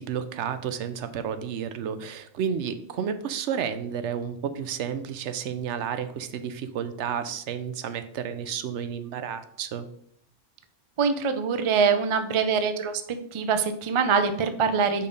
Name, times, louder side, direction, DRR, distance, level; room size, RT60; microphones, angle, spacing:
voice 1, 0.0-9.9, right 8 dB, 75° right, 11 dB, 0.9 m, -31 dB
voice 2, 11.0-13.0 13.3-15.1, right 6 dB, 45° right, 9 dB, 0.4 m, -24 dB
5.2 x 4.4 x 5.2 m, 0.69 s
omnidirectional pair, 1.3 m